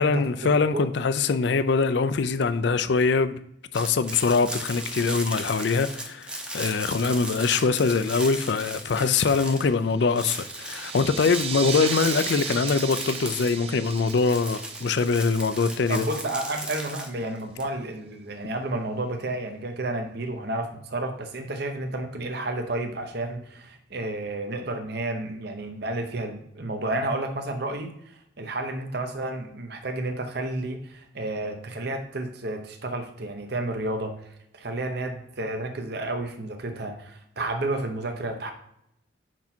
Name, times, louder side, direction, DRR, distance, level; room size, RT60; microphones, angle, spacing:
voice 1, 0.0-3.4 3.7-16.1, left 4 dB, 60° left, 0.4 m, -23 dB
sound 1, 3.7-9.8 10.1-17.6, right 1 dB, 5° right, 0.7 m, -36 dB
sound 2, 10.0-16.2, right 8 dB, 30° right, 0.4 m, -36 dB
voice 2, 15.9-34.1 34.5-38.5, right 2 dB, 55° right, 0.9 m, -31 dB
6.0 x 5.7 x 4.4 m
head